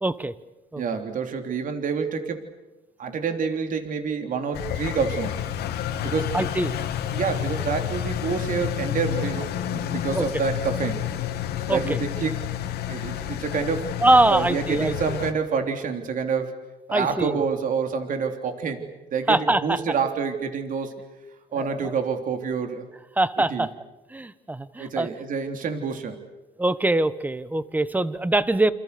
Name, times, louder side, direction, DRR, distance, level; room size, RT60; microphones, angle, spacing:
voice 1, 0.0-0.3 0.7-0.8 6.3-6.7 10.2-10.3 11.7-12.0 14.0-14.9 16.9-17.4 19.3-19.8 21.5-21.9 23.2-23.7 24.1-25.1 26.6-28.7, right 2 dB, 10° right, 14 dB, 1.2 m, -23 dB
voice 2, 0.8-2.5 3.0-5.4 6.0-6.4 7.1-11.0 11.7-12.4 12.9-13.9 14.3-16.5 16.9-20.9 21.5-22.9 23.5-23.7 24.8-26.2, right 6 dB, 50° right, 5 dB, 3.4 m, -27 dB
Engine, 4.5-15.3, left 11 dB, 75° left, 2.6 m, -30 dB
28.0 x 27.5 x 6.9 m, 1.1 s
cardioid pair, 110°, 17 cm